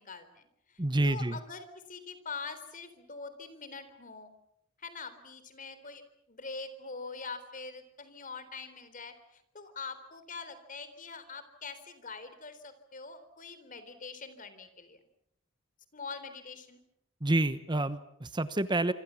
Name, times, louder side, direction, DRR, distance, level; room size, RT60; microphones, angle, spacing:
voice 1, 0.0-4.3 4.8-6.0 6.3-15.0 15.9-16.8, left 4 dB, 40° left, 12 dB, 3.8 m, -44 dB
voice 2, 0.8-1.4 17.2-18.9, right 2 dB, 20° right, 12 dB, 1.0 m, -28 dB
26.5 x 25.5 x 7.2 m, 0.75 s
head